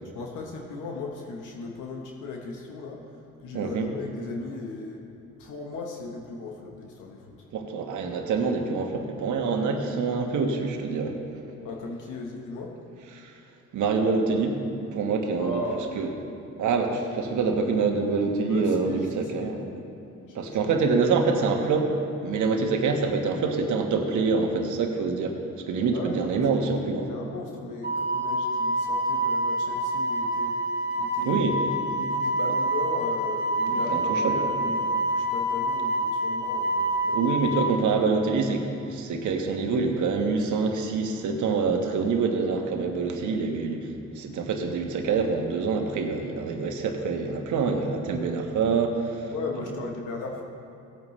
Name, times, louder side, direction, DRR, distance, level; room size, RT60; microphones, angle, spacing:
voice 1, 0.1-5.0 5.4-7.4 11.6-12.7 15.4-16.0 18.5-19.5 20.3-20.7 25.9-37.3 37.9-38.2 49.3-50.4, left 3 dB, 85° left, 0 dB, 1.2 m, -37 dB
voice 2, 3.5-3.9 7.5-11.2 13.1-13.3 13.7-14.6 14.9-15.6 15.9-16.1 16.6-19.6 20.3-21.9 22.2-25.4 25.7-27.1 31.2-31.6 33.7-34.4 37.1-43.9 44.1-49.3, right 4 dB, 75° right, 2 dB, 1.4 m, -26 dB
Wind instrument woodwind instrument, 27.8-37.7, right 1 dB, 35° right, 1.4 m, -27 dB
17.5 x 8.9 x 3.2 m, 2.8 s
cardioid pair, 90°, 30 cm